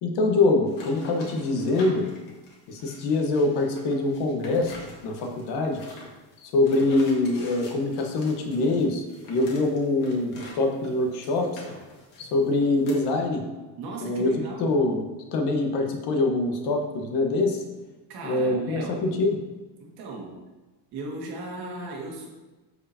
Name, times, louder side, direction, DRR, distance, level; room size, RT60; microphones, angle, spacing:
voice 1, 0.0-2.1 2.7-4.8 5.0-5.8 6.4-11.6 12.2-13.5 14.0-15.0 15.3-17.6 18.2-19.4, left 2 dB, 75° left, 3 dB, 1.3 m, -24 dB
sound 1, 0.7-10.6 10.8-13.1, left 2 dB, 50° left, 1.8 m, -45 dB
voice 2, 13.8-14.7 18.1-19.0 19.8-20.4 20.9-22.3, right 2 dB, 65° right, -1 dB, 1.9 m, -36 dB
11.0 x 4.9 x 2.8 m, 1.2 s
cardioid pair, 175°, 41 cm